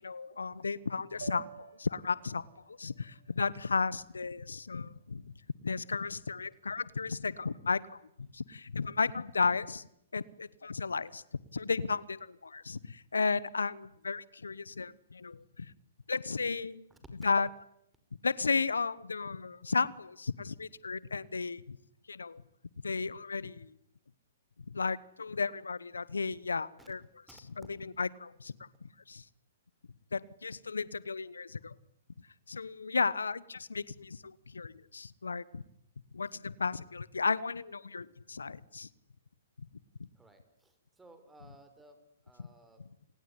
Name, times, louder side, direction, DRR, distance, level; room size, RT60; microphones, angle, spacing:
voice 1, 0.0-2.4 2.7-5.2 5.6-7.9 8.3-9.9 10.1-11.2 11.5-15.7 16.1-16.8 17.2-17.5 18.2-21.8 22.1-22.4 22.8-23.7 24.7-27.0 27.6-28.5 29.1-29.2 30.1-31.7 32.5-35.6 36.1-38.9, left 4 dB, 90° left, 20 dB, 1.1 m, -34 dB
sound 1, 1.2-5.5, right 8 dB, 75° right, 1.7 m, -52 dB
voice 2, 16.9-17.3 26.8-26.9 27.3-27.4 27.8-27.9 40.2-42.8, right 2 dB, 10° right, 8 dB, 5.4 m, -58 dB
29.0 x 20.0 x 9.8 m, 0.77 s
hypercardioid pair, 130°, 0 cm